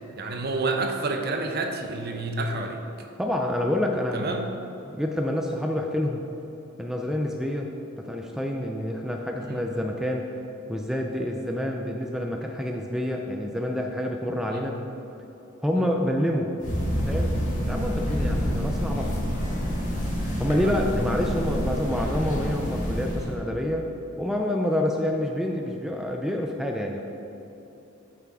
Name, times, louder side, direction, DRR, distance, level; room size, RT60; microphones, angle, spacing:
voice 1, 0.2-2.8 4.1-4.5 9.4-9.7 14.5-14.7 15.8-15.9 18.6-18.7 20.6-20.8, right 3 dB, 50° right, 4 dB, 0.7 m, -29 dB
voice 2, 3.2-4.3 4.9-6.2 6.8-7.7 8.0-10.3 10.7-14.8 15.6-16.5 17.0-17.3 17.7-19.1 20.4-23.9 24.2-27.0, left 1 dB, ahead, 1 dB, 0.4 m, -27 dB
sound 1, 16.6-23.3, equal, 40° left, 1.6 m, -27 dB
7.9 x 5.7 x 4.7 m, 3.0 s
head